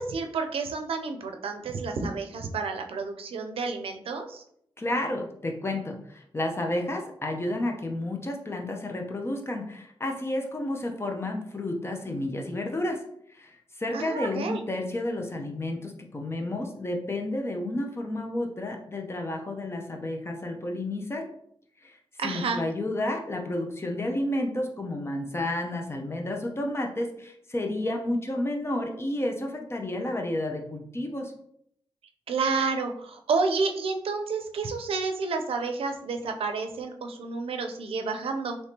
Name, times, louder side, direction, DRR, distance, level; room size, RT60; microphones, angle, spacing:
voice 1, 0.0-4.4 13.9-14.6 22.2-22.6 32.3-38.6, right 4 dB, 80° right, 5 dB, 0.5 m, -30 dB
voice 2, 4.8-13.0 13.3-21.3 21.8-22.0 22.2-31.3, left 1 dB, 25° left, 2 dB, 0.7 m, -31 dB
3.4 x 3.1 x 2.8 m, 0.70 s
cardioid pair, 70°, 9 cm